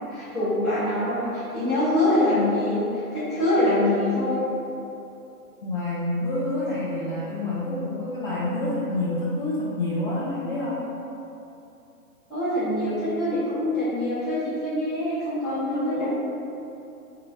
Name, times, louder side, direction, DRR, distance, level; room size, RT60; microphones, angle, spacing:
voice 1, 0.0-4.4 12.3-16.1, left 1 dB, ahead, -20 dB, 1.0 m, -24 dB
voice 2, 5.6-10.9 15.5-16.1, left 1 dB, 35° left, -9 dB, 0.5 m, -28 dB
3.6 x 2.7 x 4.3 m, 2.8 s
hypercardioid pair, 165°, 44 cm